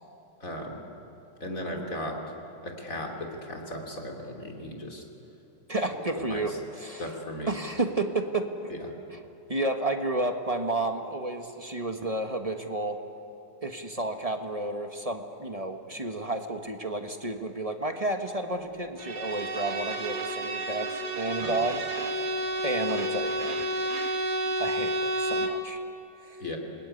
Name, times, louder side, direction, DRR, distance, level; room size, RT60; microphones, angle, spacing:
voice 1, 0.4-0.8 1.4-2.2 2.6-5.0 6.2-6.6 7.0-7.5 8.7-8.9 21.4-21.6 26.4-26.6, left 1 dB, 40° left, 1 dB, 3.4 m, -36 dB
voice 2, 5.7-7.1 7.5-8.7 9.5-13.0 13.6-21.8 22.1-22.2 22.6-23.6 24.6-25.8 26.3-26.4, right 2 dB, 20° right, 5 dB, 1.0 m, -31 dB
Bowed string instrument, 19.0-25.7, right 1 dB, 50° right, 2.2 m, -30 dB
27.5 x 21.0 x 9.8 m, 2.9 s
omnidirectional pair, 2.4 m